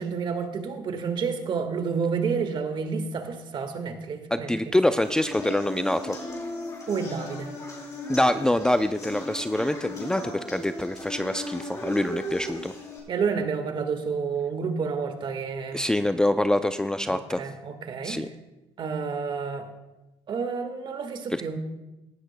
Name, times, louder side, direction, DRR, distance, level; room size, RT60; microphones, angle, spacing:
voice 1, 0.0-4.7 6.9-7.5 13.1-15.8 17.1-18.2 18.8-19.7 20.3-21.6, right 5 dB, 50° right, 7 dB, 1.6 m, -30 dB
voice 2, 4.3-6.2 8.1-12.7 15.7-17.4 18.0-18.3 21.3-21.4, left 1 dB, 5° left, 10 dB, 0.4 m, -25 dB
sound 1, 5.0-13.0, left 1 dB, 30° left, 5.1 m, -37 dB
18.0 x 13.0 x 2.2 m, 1.0 s
supercardioid pair, 90°, 11 cm